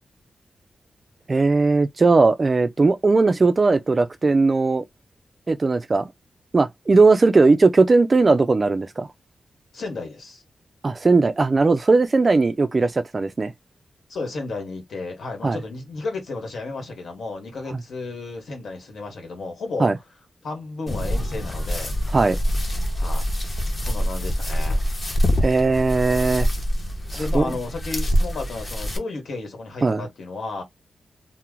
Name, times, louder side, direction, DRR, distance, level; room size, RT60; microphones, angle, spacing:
voice 1, 1.3-4.9 5.5-6.1 6.5-9.1 10.8-13.5 15.4-15.6 19.8-19.9 22.1-22.4 25.4-26.5 27.1-27.6 29.8-30.0, right 3 dB, 30° right, 0.3 m, -18 dB
voice 2, 9.7-10.4 14.1-19.9 20.4-22.0 23.0-23.2 23.8-24.8 27.1-30.6, left 3 dB, 75° left, 1.3 m, -33 dB
sound 1, 20.9-29.0, equal, 30° left, 0.8 m, -25 dB
2.9 x 2.0 x 3.6 m
wide cardioid pair, 140°, 0 cm